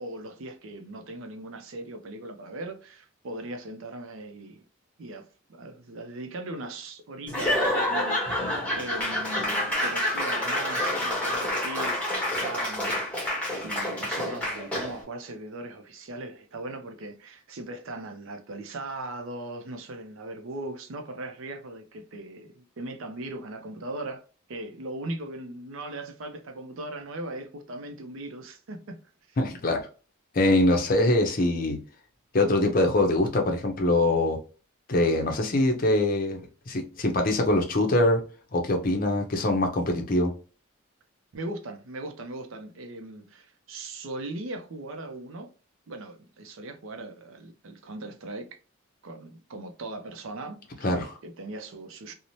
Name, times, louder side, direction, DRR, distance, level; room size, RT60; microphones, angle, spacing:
voice 1, 0.0-4.7 5.0-13.0 13.6-24.2 24.5-29.0 29.3-29.4 41.3-45.5 45.9-48.6 49.0-50.9 51.2-52.1, right 2 dB, 65° right, 0.5 m, -39 dB
Laughter / Applause / Crowd, 7.3-15.0, left 1 dB, 5° left, 0.8 m, -28 dB
voice 2, 29.4-29.8 30.3-31.8 32.3-34.4 34.9-38.2 38.5-40.3 50.8-51.2, left 1 dB, 40° left, 0.5 m, -23 dB
2.6 x 2.0 x 2.9 m
head